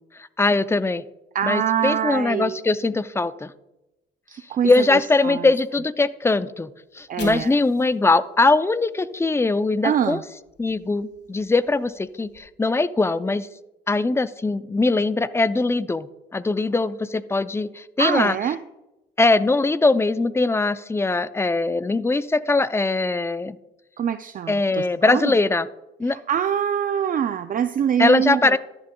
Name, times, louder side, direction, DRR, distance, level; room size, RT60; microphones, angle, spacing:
voice 1, 0.4-1.0 1.4-3.5 4.6-10.2 10.6-13.5 13.9-18.4 19.2-23.6 24.5-25.7 26.0-26.2 28.0-28.6, left 3 dB, 15° left, 14 dB, 0.4 m, -21 dB
voice 2, 1.3-2.6 4.3-5.5 7.1-7.5 9.8-10.2 18.0-18.6 24.0-25.3 26.1-28.6, right 9 dB, 45° right, 10 dB, 0.4 m, -24 dB
Fire, 6.8-10.0 10.3-12.4, left 4 dB, 65° left, 2.7 m, -50 dB
13.0 x 11.0 x 2.3 m, 0.96 s
cardioid pair, 90°, 20 cm